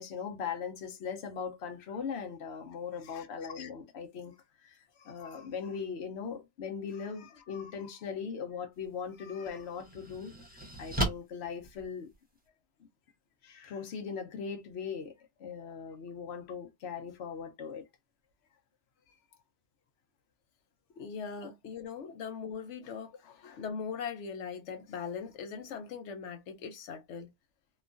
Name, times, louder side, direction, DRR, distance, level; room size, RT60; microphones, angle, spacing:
voice 1, 0.0-12.1 13.4-15.1 15.4-17.9 21.4-21.5, left 6 dB, 70° left, 1.0 m, -40 dB
sound 1, 8.7-8.9 9.4-12.5, right 1 dB, 10° right, 0.9 m, -36 dB
voice 2, 21.0-27.3, left 6 dB, 85° left, 1.0 m, -40 dB
3.0 x 2.3 x 2.5 m
omnidirectional pair, 1.2 m